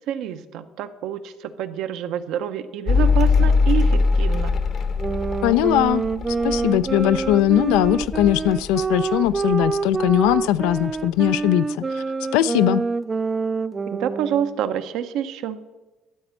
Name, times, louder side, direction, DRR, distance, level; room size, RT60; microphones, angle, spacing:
voice 1, 0.1-4.5 13.9-15.6, right 9 dB, 75° right, 0.7 m, -27 dB
Mechanical fan, 2.9-9.7 10.0-10.8, left 4 dB, 55° left, 0.9 m, -22 dB
sound 1, 5.0-14.7, right 4 dB, 25° right, 0.3 m, -26 dB
voice 2, 5.4-6.0 6.3-12.0 12.3-12.8, left 13 dB, 90° left, 0.3 m, -20 dB
13.0 x 4.3 x 8.1 m
cardioid pair, 95°, 0 cm